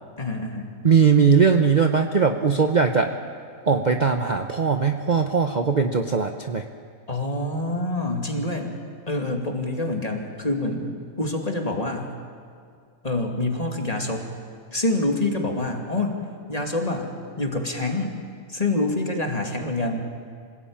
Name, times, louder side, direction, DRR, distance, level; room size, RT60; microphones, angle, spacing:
voice 1, 0.2-0.8 7.1-8.7 9.1-12.1 13.0-14.3 14.7-16.2 16.5-17.1 17.4-18.1 18.5-20.0, left 2 dB, 25° left, 2 dB, 2.6 m, -26 dB
voice 2, 0.8-3.1 3.7-6.6, right 5 dB, 35° right, 5 dB, 0.9 m, -20 dB
27.0 x 17.0 x 8.8 m, 2.2 s
omnidirectional pair, 1.5 m